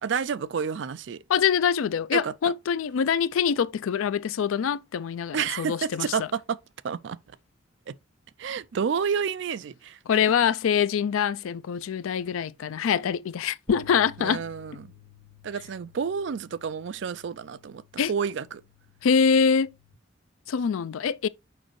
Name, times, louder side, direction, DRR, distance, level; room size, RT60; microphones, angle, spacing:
voice 1, 0.0-1.2 2.1-2.5 5.3-6.6 6.8-7.2 7.9-8.0 8.4-10.0 14.2-14.9 15.4-18.6, right 6 dB, 60° right, 0.4 m, -30 dB
voice 2, 1.3-6.1 10.1-14.4 18.0-18.1 19.0-19.7 20.5-21.3, left 7 dB, 80° left, 0.4 m, -24 dB
sound 1, 13.7-19.9, left 5 dB, ahead, 3.9 m, -53 dB
6.5 x 5.1 x 3.1 m
head